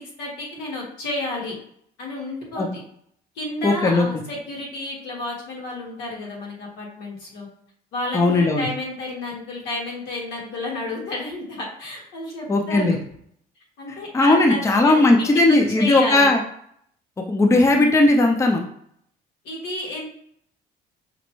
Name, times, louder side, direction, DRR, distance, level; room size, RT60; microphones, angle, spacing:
voice 1, 0.0-1.6 2.0-2.8 3.3-7.5 7.9-13.0 13.8-16.3 19.4-20.1, left 2 dB, 90° left, -2 dB, 1.4 m, -31 dB
voice 2, 3.6-4.1 8.1-8.7 12.5-13.0 14.1-16.4 17.3-18.6, left 2 dB, 15° left, 3 dB, 0.5 m, -17 dB
5.0 x 2.1 x 3.0 m, 0.68 s
cardioid pair, 110°, 17 cm